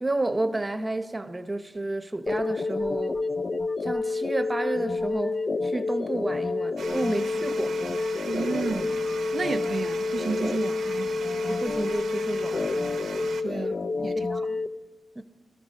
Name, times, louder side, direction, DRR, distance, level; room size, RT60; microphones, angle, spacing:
voice 1, 0.0-3.2 3.8-5.3 5.6-7.7 11.5-12.9 14.0-14.6 15.2-15.3, right 2 dB, 15° right, 0.8 m, -31 dB
sound 1, 2.3-14.7, left 3 dB, 35° left, 0.5 m, -29 dB
sound 2, 6.8-13.4, right 6 dB, 85° right, 0.9 m, -39 dB
voice 2, 8.3-9.0 9.3-11.1 13.4-13.7 14.0-14.3, right 4 dB, 40° right, 0.5 m, -31 dB
18.5 x 13.0 x 5.4 m
wide cardioid pair, 170°, 0 cm